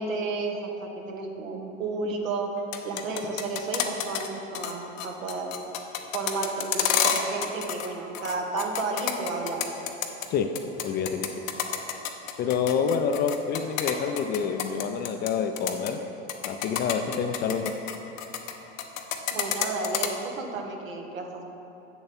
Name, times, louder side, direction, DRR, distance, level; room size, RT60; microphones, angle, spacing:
voice 1, 0.0-2.5 2.8-5.5 6.1-9.7 19.3-21.4, right 3 dB, 90° right, 2 dB, 1.1 m, -32 dB
sound 1, 2.6-4.3 4.5-4.7 5.0-7.9 8.1-10.3 10.6-15.3 15.6-15.9 16.3-18.5 18.8-20.1, left 9 dB, 80° left, 0.8 m, -29 dB
voice 2, 10.8-11.4 12.4-16.0 16.4-17.8, left 6 dB, 25° left, 7 dB, 0.3 m, -27 dB
7.7 x 6.9 x 4.2 m, 2.9 s
hypercardioid pair, 95°, 39 cm